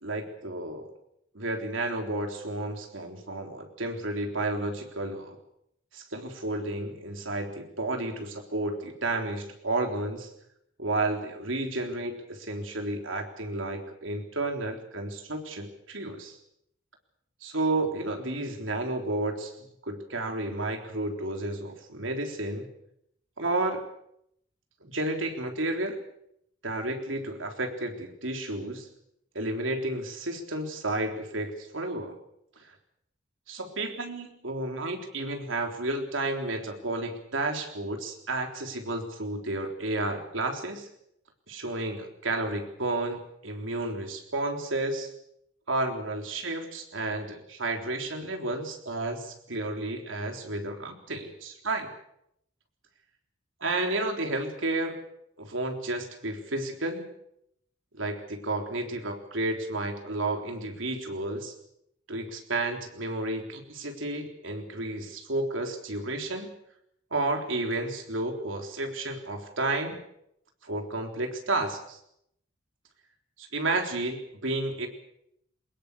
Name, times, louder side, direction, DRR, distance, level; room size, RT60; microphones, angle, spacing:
voice 1, 0.0-0.9 1.3-5.4 5.9-10.3 10.8-16.4 17.4-22.7 23.4-23.8 24.8-26.0 26.6-28.9 29.3-32.2 33.5-40.9 41.5-45.1 45.7-51.9 53.6-55.0 55.4-57.1 57.9-61.5 62.1-66.5 67.1-70.0 70.6-72.0 73.4-74.9, right 2 dB, 80° right, 4 dB, 3.8 m, -32 dB
23.5 x 20.5 x 6.8 m, 0.75 s
head